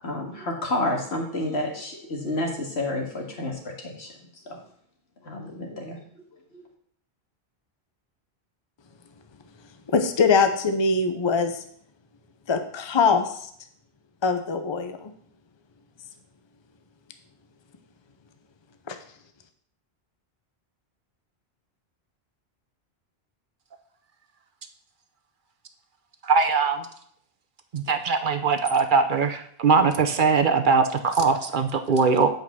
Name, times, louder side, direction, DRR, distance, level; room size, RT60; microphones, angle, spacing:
voice 1, 0.0-4.1 4.5-4.6 5.2-6.0 6.3-6.6, left 1 dB, 80° left, 0 dB, 2.1 m, -30 dB
voice 2, 9.9-11.6 12.5-13.4 14.2-15.1 18.9-19.0, left 5 dB, 30° left, 7 dB, 0.7 m, -22 dB
voice 3, 26.2-26.9 27.7-32.3, right 4 dB, 55° right, 7 dB, 0.8 m, -21 dB
8.4 x 5.2 x 6.1 m, 0.64 s
omnidirectional pair, 1.1 m